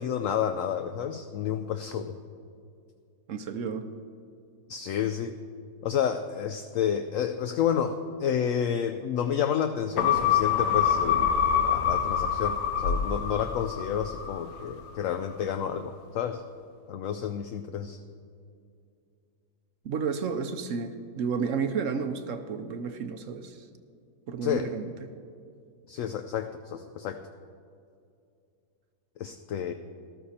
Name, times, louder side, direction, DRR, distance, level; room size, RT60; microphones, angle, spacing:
voice 1, 0.0-2.2 4.7-5.3 5.8-16.4 16.9-18.0 24.4-24.7 25.9-27.2 29.2-29.7, left 8 dB, 70° left, 8 dB, 0.8 m, -30 dB
voice 2, 3.3-3.8 19.8-23.6 24.3-24.9, right 5 dB, 60° right, 8 dB, 0.9 m, -31 dB
Raetis ping reupload, 10.0-14.6 15.0-15.1, left 8 dB, 85° left, 1.5 m, -25 dB
13.5 x 13.0 x 4.2 m, 2.4 s
omnidirectional pair, 1.7 m